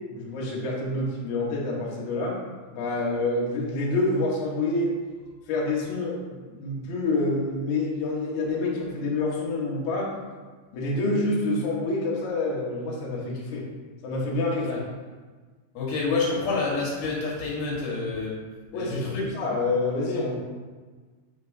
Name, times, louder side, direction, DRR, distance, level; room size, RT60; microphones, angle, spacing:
voice 1, 0.1-2.4 2.7-4.9 5.5-10.1 10.7-13.6 14.0-14.8 18.7-20.4, left 2 dB, 60° left, -4 dB, 2.3 m, -27 dB
voice 2, 15.8-18.4 18.7-19.3, left 3 dB, 85° left, -5 dB, 3.5 m, -28 dB
8.1 x 5.3 x 2.7 m, 1.4 s
omnidirectional pair, 4.3 m